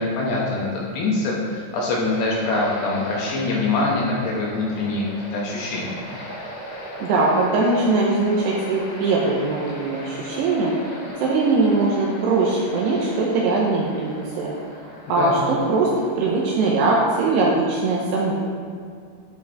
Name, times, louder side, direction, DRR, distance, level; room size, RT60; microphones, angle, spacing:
voice 1, 0.0-5.1 5.3-6.0 15.1-15.4, left 2 dB, 75° left, -4 dB, 2.7 m, -24 dB
sound 1, 2.1-16.6, equal, 35° left, 1.5 m, -38 dB
voice 2, 7.0-10.7 11.2-14.5 15.1-15.9 16.2-18.3, right 3 dB, 80° right, -3 dB, 2.5 m, -21 dB
12.5 x 5.3 x 3.4 m, 2.2 s
omnidirectional pair, 5.6 m